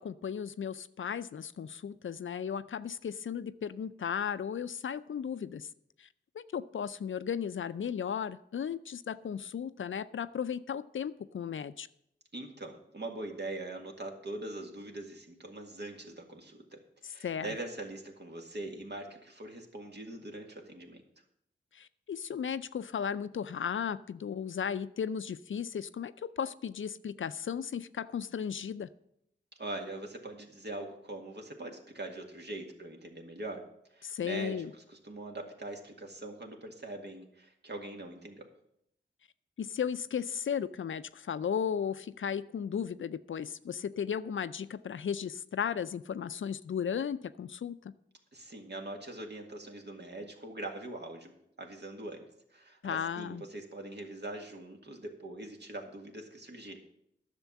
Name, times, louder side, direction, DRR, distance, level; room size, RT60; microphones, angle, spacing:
voice 1, 0.0-5.7 6.0-6.1 6.3-11.9 17.2-17.5 21.7-28.9 34.0-34.7 39.6-47.9 52.8-53.4, left 7 dB, 70° left, 14 dB, 0.5 m, -35 dB
voice 2, 12.3-21.0 29.6-33.6 33.9-38.5 48.3-51.3 51.6-56.8, right 2 dB, 55° right, 2 dB, 1.9 m, -42 dB
10.5 x 6.6 x 7.2 m, 0.76 s
cardioid pair, 50°, 21 cm